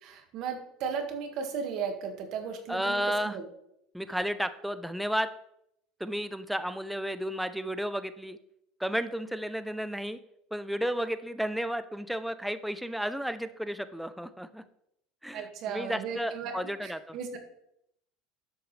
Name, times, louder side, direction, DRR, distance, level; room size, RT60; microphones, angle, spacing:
voice 1, 0.0-3.4 15.3-17.4, right 6 dB, 55° right, 5 dB, 1.8 m, -36 dB
voice 2, 2.7-3.4 3.9-5.3 6.0-8.4 8.8-10.2 10.5-14.6 15.2-17.2, equal, ahead, 11 dB, 0.5 m, -32 dB
11.0 x 7.9 x 3.3 m, 0.77 s
supercardioid pair, 115°, 0 cm